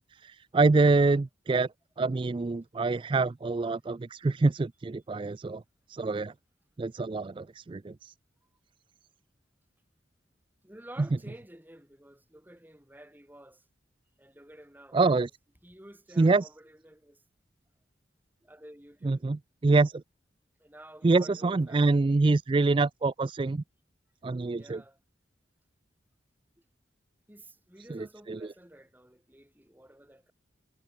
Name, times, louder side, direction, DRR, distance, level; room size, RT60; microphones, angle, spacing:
voice 1, 0.0-1.7 2.0-5.6 5.9-6.3 6.8-8.1 14.9-15.3 16.2-16.5 19.0-20.0 21.0-23.6 24.2-24.8 27.9-28.4, right 3 dB, 30° right, 0.3 m, -26 dB
voice 2, 10.6-13.6 14.2-15.3 15.6-17.2 18.4-19.3 20.6-22.2 24.5-25.0 26.6-26.7 27.3-30.3, right 1 dB, 10° right, 2.6 m, -52 dB
head